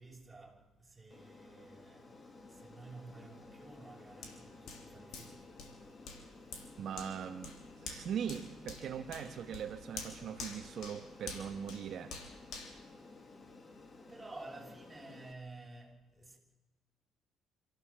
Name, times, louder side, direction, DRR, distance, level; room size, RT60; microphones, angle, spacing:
voice 1, 0.0-6.8 13.5-13.6 14.1-16.4, right 2 dB, 10° right, 6.7 m, -53 dB
Aircraft, 1.1-15.3, left 3 dB, 30° left, 2.2 m, -55 dB
Hands, 4.2-13.7 14.2-14.3, left 4 dB, 70° left, 3.6 m, -49 dB
voice 2, 6.8-7.5 7.8-12.1, right 8 dB, 60° right, 1.3 m, -40 dB
26.5 x 15.0 x 7.4 m
cardioid pair, 105°, 0 cm